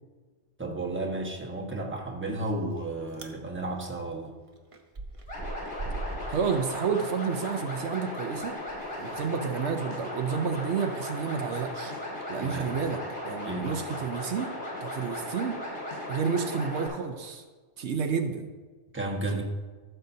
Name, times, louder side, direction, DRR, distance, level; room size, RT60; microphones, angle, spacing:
voice 1, 0.6-4.3 12.4-12.7 13.4-13.7 18.9-19.4, right 2 dB, 10° right, -1 dB, 1.2 m, -33 dB
Chewing mastication, 2.3-2.8 3.1-3.4 3.8-7.5 7.8-13.2, right 2 dB, 35° right, 0.8 m, -43 dB
sound 1, 5.3-16.9, left 1 dB, 55° left, 3.3 m, -37 dB
voice 2, 6.3-8.6 9.0-11.9 12.3-13.0 13.2-14.5 14.8-15.6 16.1-17.4 17.8-18.5 19.3-19.4, right 6 dB, 75° right, 6 dB, 1.0 m, -30 dB
sound 2, 9.9-10.2 11.9-12.2 13.9-14.2 15.9-16.2, left 8 dB, 80° left, 1.3 m, -49 dB
14.5 x 6.8 x 2.7 m, 1.4 s
omnidirectional pair, 1.2 m